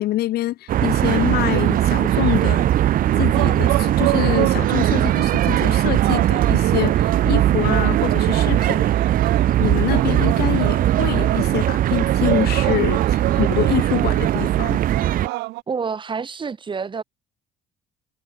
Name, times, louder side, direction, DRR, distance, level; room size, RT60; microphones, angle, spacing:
voice 1, 0.0-8.9 9.6-14.8, left 15 dB, 65° left, 0.8 m, -26 dB
sound 1, 0.7-15.3, right 12 dB, 55° right, 0.7 m, -19 dB
sound 2, 3.3-15.6, right 22 dB, 90° right, 0.7 m, -29 dB
voice 2, 15.7-17.0, right 5 dB, 30° right, 1.6 m, -28 dB
cardioid pair, 110°, 17 cm